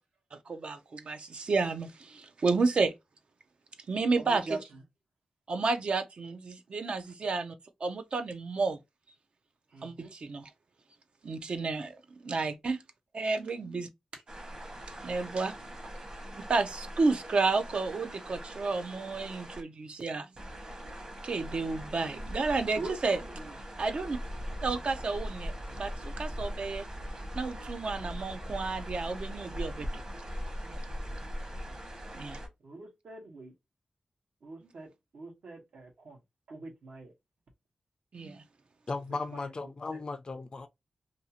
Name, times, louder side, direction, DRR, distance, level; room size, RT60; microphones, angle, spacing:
voice 1, 0.3-2.9 3.9-4.4 5.5-7.6 7.8-8.8 9.8-10.5 11.2-12.0 12.2-12.8 13.1-13.9 15.0-15.6 16.5-20.3 21.2-23.2 23.8-24.2 24.6-26.9 27.3-30.0 32.1-32.4 38.1-38.4, right 4 dB, 55° right, 0.4 m, -31 dB
voice 2, 4.2-4.8 9.7-10.1 14.1-14.2 22.7-23.6 30.6-30.8 31.6-31.8 32.6-33.5 34.4-36.2 36.5-37.1 39.1-40.0, right 3 dB, 80° right, 1.0 m, -43 dB
sound 1, 14.3-19.6 20.4-32.5, equal, 40° right, 1.0 m, -41 dB
voice 3, 38.9-40.7, left 3 dB, 40° left, 0.4 m, -36 dB
2.6 x 2.4 x 2.7 m
wide cardioid pair, 90°, 2 cm